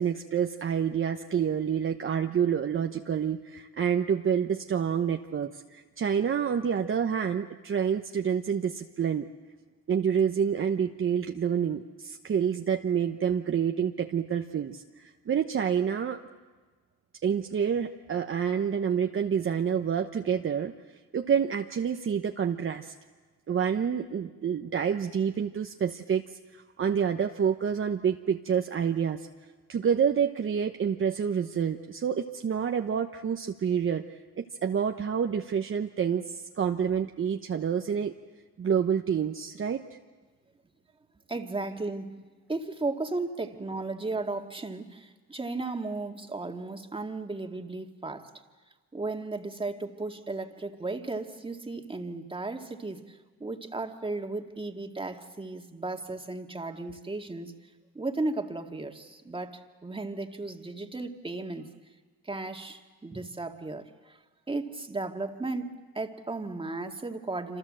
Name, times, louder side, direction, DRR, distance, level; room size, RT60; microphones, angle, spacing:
voice 1, 0.0-9.3 9.9-16.2 17.2-20.7 21.1-22.9 23.5-29.3 29.7-34.0 34.4-38.1 38.6-39.8, right 7 dB, 45° right, 4 dB, 1.0 m, -28 dB
voice 2, 41.3-42.2 42.5-48.3 48.9-57.5 57.9-61.7 62.2-64.2 64.5-67.6, right 3 dB, 15° right, 4 dB, 2.1 m, -35 dB
27.0 x 27.0 x 7.7 m, 1.3 s
cardioid pair, 90°, 30 cm